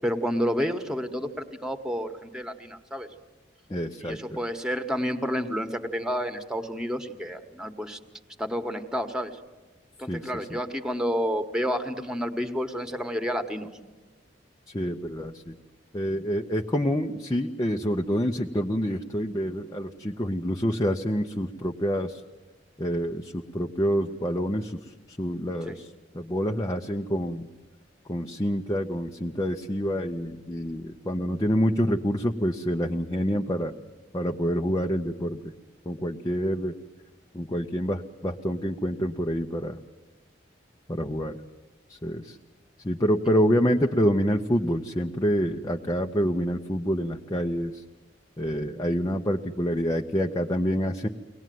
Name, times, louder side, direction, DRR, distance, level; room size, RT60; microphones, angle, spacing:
voice 1, 0.0-3.1 4.0-8.0 8.4-9.4 10.0-13.7 25.7-25.8, equal, 5° right, 7 dB, 1.3 m, -30 dB
voice 2, 3.7-4.4 10.1-10.6 14.7-15.6 15.9-22.2 22.8-24.8 25.2-25.9 26.1-27.5 28.1-33.7 34.1-35.4 35.9-36.7 37.3-39.8 40.9-41.4 41.9-42.4 42.8-47.8 48.4-51.1, equal, 20° left, 1 dB, 0.7 m, -27 dB
23.0 x 18.5 x 9.3 m, 1.2 s
head